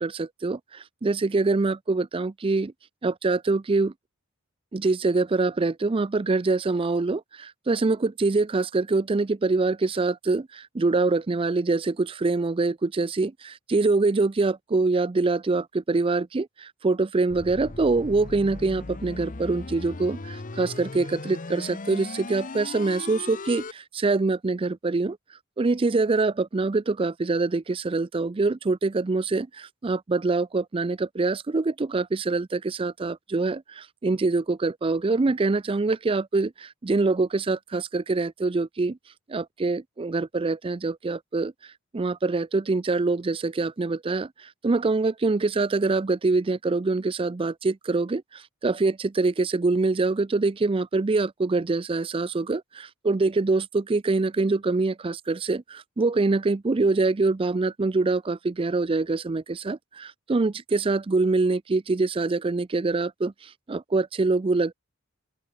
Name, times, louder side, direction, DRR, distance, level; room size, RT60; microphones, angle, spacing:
voice 1, 0.0-2.7 3.0-3.9 4.7-25.2 25.6-39.0 39.3-64.7, right 3 dB, 25° right, 0.4 m, -25 dB
sound 1, 17.3-23.7, left 3 dB, 35° left, 0.9 m, -38 dB
open air
head